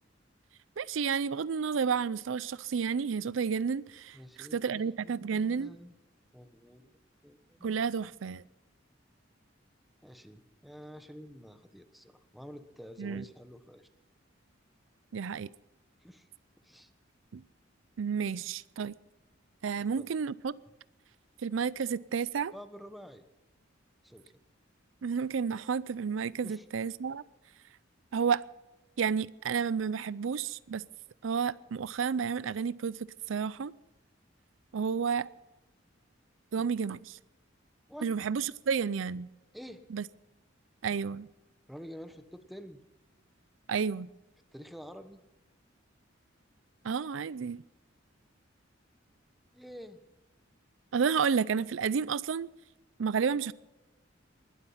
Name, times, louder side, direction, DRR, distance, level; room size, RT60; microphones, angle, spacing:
voice 1, 0.8-5.7 7.6-8.4 13.0-13.2 15.1-15.5 17.3-17.4 18.0-18.9 19.6-20.5 21.4-22.5 25.0-27.2 28.1-28.4 29.0-30.8 31.2-33.0 33.3-33.7 34.7-35.3 36.5-37.2 38.0-39.3 39.9-40.0 40.8-41.3 43.7-44.1 46.8-47.6 50.9-52.5 53.0-53.5, right 6 dB, 75° right, 0.5 m, -31 dB
voice 2, 4.1-5.9 6.3-6.9 7.2-7.8 10.0-13.9 16.0-16.3 16.6-16.9 19.8-20.1 22.5-23.2 24.0-24.3 26.4-26.7 37.9-38.1 39.5-39.8 41.7-42.8 44.5-45.2 49.5-50.0, equal, ahead, 1.2 m, -48 dB
20.5 x 12.0 x 5.7 m
head